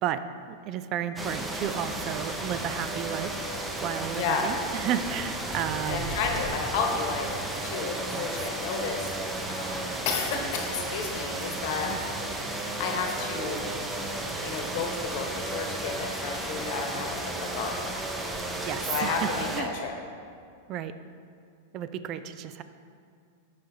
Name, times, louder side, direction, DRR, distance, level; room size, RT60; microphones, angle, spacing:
voice 1, 0.0-3.5 3.8-6.2 8.1-8.3 11.9-12.0 18.7-19.7 20.7-20.9 21.7-22.6, right 9 dB, 40° right, 12 dB, 0.4 m, -32 dB
sound 1, 1.2-19.6, right 1 dB, 10° right, 0.7 m, -33 dB
voice 2, 4.1-4.5 5.9-7.3 7.6-9.1 9.5-11.9 12.5-13.6 14.4-17.8 18.9-19.9, left 5 dB, 60° left, 2 dB, 1.1 m, -32 dB
12.0 x 5.0 x 2.8 m, 2.3 s
hypercardioid pair, 115°, 0 cm